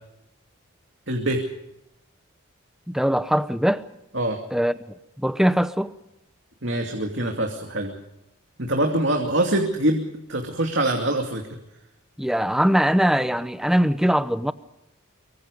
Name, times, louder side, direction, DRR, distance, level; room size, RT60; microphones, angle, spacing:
voice 1, 1.1-1.4 4.1-4.4 6.6-7.9 8.6-11.4, right 1 dB, 55° right, 2.6 m, -24 dB
voice 2, 2.9-3.8 4.5-5.9 12.2-14.5, equal, ahead, 0.8 m, -21 dB
24.0 x 23.5 x 5.3 m
head